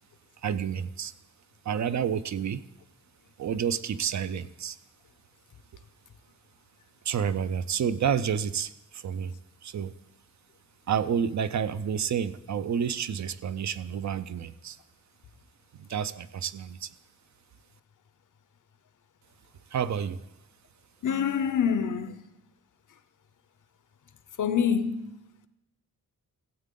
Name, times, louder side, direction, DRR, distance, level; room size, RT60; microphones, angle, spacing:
voice 1, 0.4-1.1 1.7-2.6 3.4-4.8 7.0-9.3 9.6-9.9 10.9-14.8 15.8-16.9 19.7-20.2, right 8 dB, 55° right, 0.4 m, -29 dB
voice 2, 21.0-22.2 24.4-25.2, left 7 dB, 60° left, 0.7 m, -26 dB
15.0 x 8.2 x 3.7 m
wide cardioid pair, 170°, 35 cm